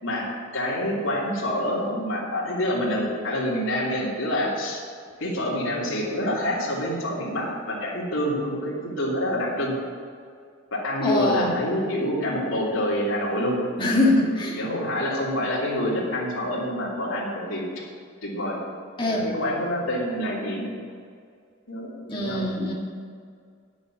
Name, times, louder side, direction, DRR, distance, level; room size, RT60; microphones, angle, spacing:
voice 1, 0.0-4.8 5.2-9.7 10.7-13.6 13.9-14.1 14.6-17.7 18.2-18.6 19.0-20.7 21.7-22.5, equal, 70° left, -5 dB, 3.0 m, -27 dB
voice 2, 11.0-11.5 13.8-14.6 19.0-19.3 22.1-22.7, left 2 dB, 20° left, -2 dB, 1.6 m, -23 dB
9.7 x 7.1 x 7.3 m, 2.1 s
head